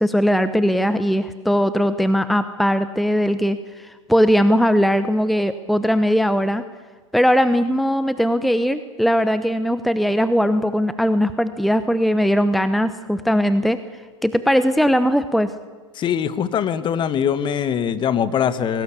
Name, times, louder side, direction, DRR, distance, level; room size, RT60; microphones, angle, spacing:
voice 1, 0.0-6.6 7.1-13.8 14.2-15.5, equal, ahead, 12 dB, 0.9 m, -19 dB
voice 2, 15.9-18.8, left 8 dB, 30° left, 14 dB, 1.5 m, -22 dB
23.0 x 18.5 x 8.5 m, 1.4 s
figure-of-eight pair, 95°, 16 cm